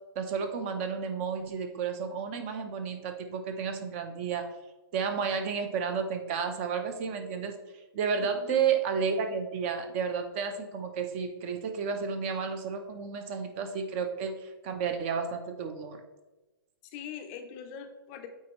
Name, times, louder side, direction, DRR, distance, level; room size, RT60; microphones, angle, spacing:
voice 1, 0.2-4.5 4.9-7.6 7.9-16.0, right 6 dB, 35° right, 7 dB, 0.7 m, -32 dB
voice 2, 8.2-8.6 16.8-18.3, left 8 dB, 30° left, 6 dB, 0.5 m, -42 dB
8.2 x 4.2 x 3.0 m, 1.1 s
hypercardioid pair, 155°, 13 cm